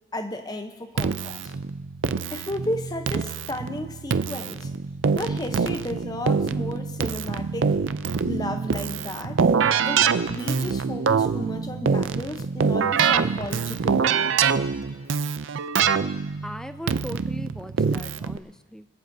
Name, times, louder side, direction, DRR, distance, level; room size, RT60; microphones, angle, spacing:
voice 1, 0.1-1.5 2.3-4.7 5.1-7.8 8.2-9.4 9.8-14.5, left 1 dB, 20° left, 6 dB, 0.8 m, -33 dB
Keyboard (musical), 1.0-18.4, right 6 dB, 75° right, 0.5 m, -25 dB
voice 2, 16.4-18.9, equal, 5° left, 11 dB, 0.3 m, -38 dB
25.0 x 14.5 x 2.7 m, 1.4 s
head